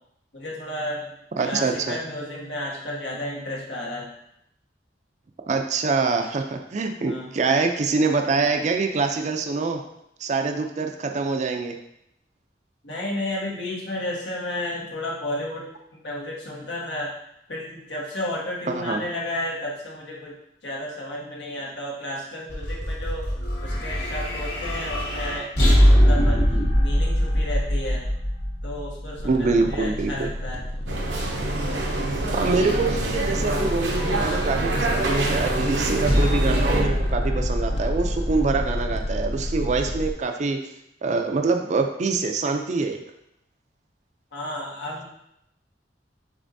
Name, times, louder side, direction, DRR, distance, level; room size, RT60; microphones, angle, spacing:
voice 1, 0.3-4.1 7.1-7.3 12.8-17.1 17.5-20.4 20.6-23.3 23.6-28.1 28.6-30.7 44.3-45.0, left 1 dB, 85° left, -3 dB, 1.3 m, -32 dB
voice 2, 1.4-2.0 5.5-9.8 10.2-11.8 18.7-19.0 29.2-30.3 32.3-40.6 41.0-43.0, right 4 dB, 40° right, 5 dB, 0.4 m, -25 dB
sound 1, 22.5-29.8 36.1-40.2, equal, 65° left, 1.4 m, -23 dB
sound 2, 29.1-40.1, equal, 35° left, 0.4 m, -30 dB
sound 3, 30.9-36.8, right 2 dB, 85° right, 0.8 m, -27 dB
6.7 x 3.0 x 2.6 m, 0.78 s
head